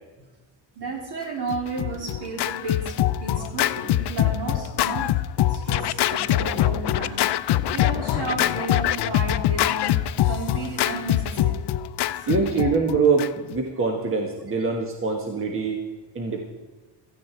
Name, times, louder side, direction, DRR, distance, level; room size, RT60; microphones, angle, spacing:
voice 1, 0.7-5.1 5.5-11.6 12.2-12.6, right 3 dB, 55° right, 1 dB, 3.5 m, -33 dB
Scratching (performance technique), 1.5-13.6, left 13 dB, 60° left, 0.6 m, -24 dB
voice 2, 12.3-15.8 16.1-16.4, right 4 dB, 25° right, 2 dB, 1.4 m, -24 dB
16.5 x 14.0 x 4.5 m, 1.2 s
cardioid pair, 180°, 46 cm